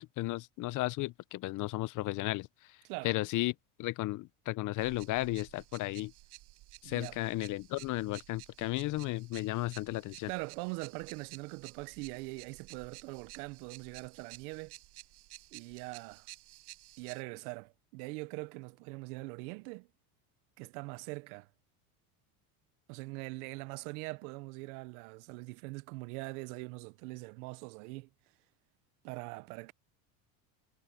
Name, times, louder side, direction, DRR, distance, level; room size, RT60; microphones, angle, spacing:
voice 1, 0.0-2.8 3.0-6.1 6.8-10.3, left 18 dB, 45° left, 0.6 m, -34 dB
sound 1, 4.8-17.2, right 19 dB, 60° right, 7.6 m, -53 dB
voice 2, 6.8-7.2 10.3-14.7 15.5-16.3 17.0-19.9 20.6-21.5 22.9-28.1 29.0-29.7, right 26 dB, 80° right, 0.8 m, -42 dB
supercardioid pair, 120°, 44 cm